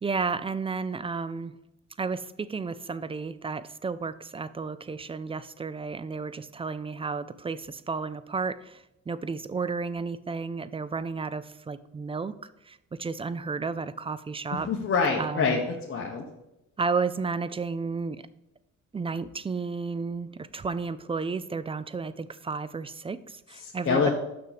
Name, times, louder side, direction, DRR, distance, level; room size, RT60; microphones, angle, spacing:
voice 1, 0.0-1.5 2.0-12.3 12.7-14.7 15.2-15.6 16.8-18.2 18.9-24.1, right 4 dB, 20° right, 15 dB, 0.3 m, -32 dB
voice 2, 14.5-16.2 23.6-24.1, left 5 dB, 45° left, -2 dB, 1.1 m, -26 dB
6.6 x 6.0 x 5.0 m, 0.89 s
cardioid pair, 90°, 30 cm